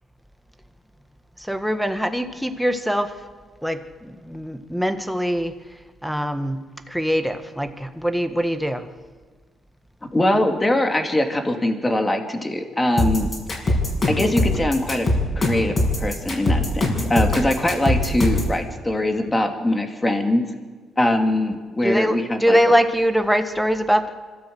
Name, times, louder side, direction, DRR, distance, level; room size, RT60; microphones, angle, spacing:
voice 1, 1.5-3.1 3.6-5.5 6.0-8.9 21.8-24.1, equal, ahead, 7 dB, 1.5 m, -22 dB
voice 2, 10.1-13.8 14.1-15.1 15.4-20.4 21.0-22.6, left 1 dB, 15° left, 4 dB, 2.6 m, -22 dB
sound 1, 13.0-18.5, left 2 dB, 40° left, 6.2 m, -21 dB
25.5 x 13.5 x 7.9 m, 1.5 s
cardioid pair, 90°, 0 cm